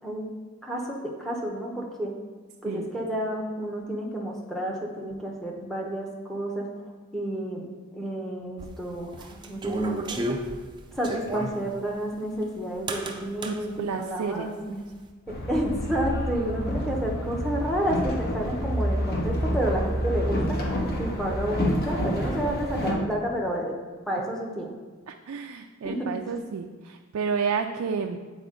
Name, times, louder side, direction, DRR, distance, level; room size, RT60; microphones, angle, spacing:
voice 1, 0.6-2.1 2.6-6.7 7.1-7.7 7.9-10.2 10.9-14.8 15.3-23.7 24.1-24.7 25.8-26.0, right 1 dB, ahead, -2 dB, 0.8 m, -30 dB
sound 1, 8.6-11.6 12.9-13.6, right 2 dB, 20° right, 0.4 m, -31 dB
voice 2, 13.4-14.8 16.3-16.5 25.1-28.2, right 6 dB, 90° right, 4 dB, 0.4 m, -31 dB
Boat Water vehicle, 15.3-22.9, equal, 45° left, 1.0 m, -28 dB
8.0 x 4.2 x 3.7 m, 1.4 s
head